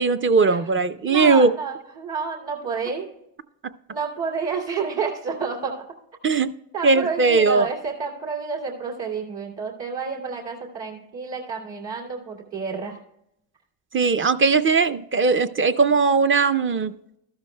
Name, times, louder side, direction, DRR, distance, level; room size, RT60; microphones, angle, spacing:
voice 1, 0.0-1.5 6.2-6.5 6.8-7.7 13.9-16.9, right 4 dB, 25° right, 11 dB, 0.5 m, -19 dB
voice 2, 1.1-3.1 3.9-5.9 6.7-13.0, right 5 dB, 60° right, -2 dB, 2.8 m, -30 dB
13.5 x 12.5 x 2.2 m, 0.81 s
supercardioid pair, 80°, 48 cm